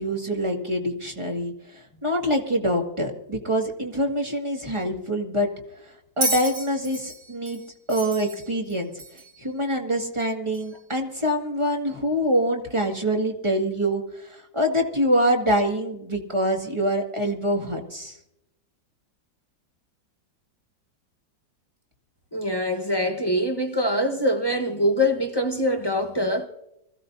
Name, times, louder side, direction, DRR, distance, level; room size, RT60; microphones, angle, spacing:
voice 1, 0.0-5.5 5.8-7.6 7.9-8.9 9.4-18.2, equal, 15° right, 2.0 m, -25 dB
Bell, 6.2-9.4 10.5-10.7, right 2 dB, 55° right, 5.0 m, -31 dB
voice 2, 22.3-26.5, equal, 15° left, 0.9 m, -24 dB
25.5 x 15.5 x 2.7 m
omnidirectional pair, 2.1 m